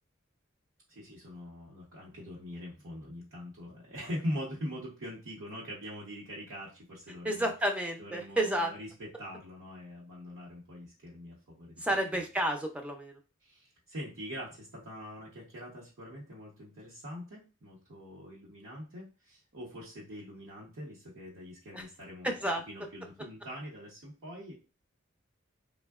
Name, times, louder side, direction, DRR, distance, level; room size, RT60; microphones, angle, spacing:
voice 1, 0.9-7.5 8.0-11.8 12.1-12.2 13.4-22.3 22.7-24.5, equal, 80° right, -6 dB, 0.8 m, -43 dB
voice 2, 7.2-8.7 11.8-13.2 21.7-21.8 22.2-22.6, right 1 dB, 5° right, 3 dB, 0.3 m, -31 dB
3.4 x 2.1 x 2.3 m, 0.33 s
head